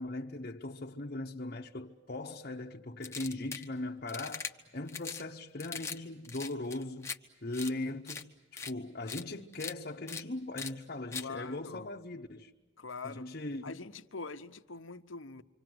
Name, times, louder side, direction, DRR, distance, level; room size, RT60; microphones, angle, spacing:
voice 1, 0.0-4.5 4.7-7.1 7.4-12.5 13.0-13.8, left 2 dB, 50° left, 1.0 m, -39 dB
sound 1, 3.0-3.7 4.1-4.5 4.9-5.2 5.6-6.0 6.2-7.2 7.5-7.7 8.1-8.2 8.6-8.7 9.1-9.2 9.5-9.7 10.1-10.2 10.6-10.7 11.1-11.3, left 5 dB, 15° left, 1.1 m, -40 dB
voice 2, 11.1-11.9 12.8-13.3 13.6-15.4, left 4 dB, 90° left, 1.1 m, -44 dB
27.5 x 25.5 x 7.9 m
head